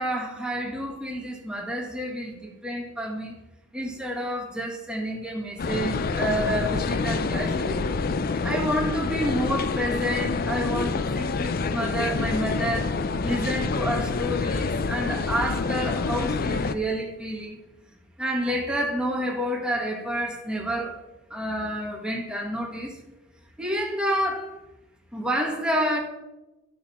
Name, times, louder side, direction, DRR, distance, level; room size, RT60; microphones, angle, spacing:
voice 1, 0.0-3.3 3.7-7.8 8.4-12.9 13.2-17.6 18.2-21.0 21.3-23.0 23.6-24.6 25.1-26.0, equal, 5° right, 1.7 m, -29 dB
sound 1, 5.6-16.7, left 4 dB, 50° left, 0.4 m, -27 dB
13.0 x 6.3 x 4.2 m
head